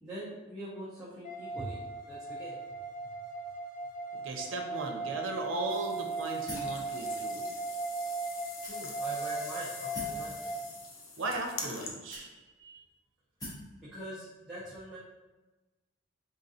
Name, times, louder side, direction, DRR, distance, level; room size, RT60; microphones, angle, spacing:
voice 1, 0.0-1.8 2.1-2.6 8.7-10.5 13.8-15.0, right 1 dB, 5° right, -11 dB, 0.8 m, -43 dB
sound 1, 1.2-10.6, right 3 dB, 40° left, 0.5 m, -37 dB
voice 2, 4.2-7.4 11.2-12.3 12.6-12.7, right 2 dB, 80° right, 2 dB, 0.7 m, -37 dB
sound 2, 5.7-11.9, left 3 dB, 80° left, 0.7 m, -45 dB
sound 3, 6.5-6.8 7.6-7.7 8.6-9.1 9.9-10.3 11.2-11.3 12.1-12.6 13.4-13.7, equal, 20° left, 1.1 m, -43 dB
3.9 x 3.7 x 2.7 m, 1.2 s
head